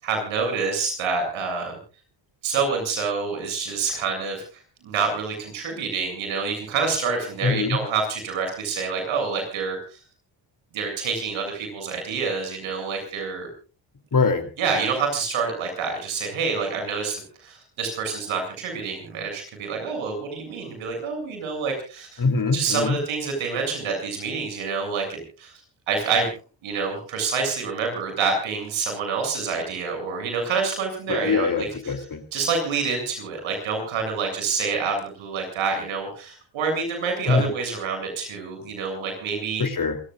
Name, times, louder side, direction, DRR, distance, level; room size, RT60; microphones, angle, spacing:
voice 1, 0.0-1.8 2.4-4.4 4.8-10.0 10.7-13.5 14.6-22.2 22.5-25.5 25.9-26.3 26.6-31.7 32.3-39.6, right 5 dB, 80° right, 4 dB, 8.0 m, -27 dB
voice 2, 7.4-7.8 14.1-14.5 22.2-23.0 31.1-32.2 37.3-37.5 39.6-40.0, left 4 dB, 45° left, 7 dB, 3.6 m, -23 dB
27.5 x 17.0 x 2.6 m, 0.36 s
supercardioid pair, 55°, 47 cm